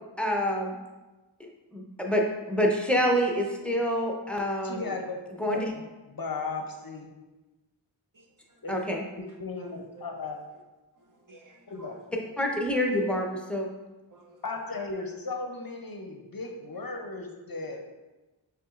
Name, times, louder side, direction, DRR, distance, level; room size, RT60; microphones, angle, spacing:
voice 1, 0.2-0.8 1.4-4.8 5.4-5.7 8.7-9.0 12.4-13.7, equal, ahead, 0 dB, 0.6 m, -27 dB
voice 2, 4.6-5.2 5.5-7.1 8.6-8.8 9.4-10.4 11.7-12.2 14.4-17.8, left 3 dB, 50° left, 3 dB, 0.6 m, -36 dB
voice 3, 8.1-8.5 9.6-10.1 10.9-11.9 14.1-14.4, right 3 dB, 45° right, 0 dB, 0.7 m, -54 dB
5.8 x 3.4 x 2.4 m, 1.1 s
wide cardioid pair, 50°, 47 cm